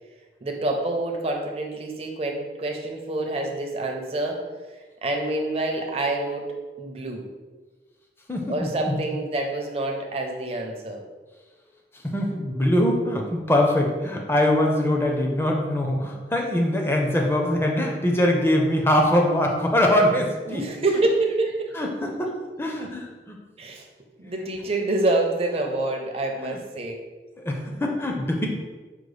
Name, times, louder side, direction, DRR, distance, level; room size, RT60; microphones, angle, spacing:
voice 1, 0.4-4.4 5.0-7.3 8.5-11.0 20.5-21.7 23.6-23.8 24.2-27.0, right 2 dB, 35° right, 1 dB, 0.6 m, -27 dB
voice 2, 8.3-9.0 12.0-20.6 21.7-22.3 22.6-23.4 26.4-26.6 27.4-28.5, left 1 dB, 15° left, 0 dB, 0.5 m, -23 dB
5.2 x 2.1 x 4.9 m, 1.3 s
head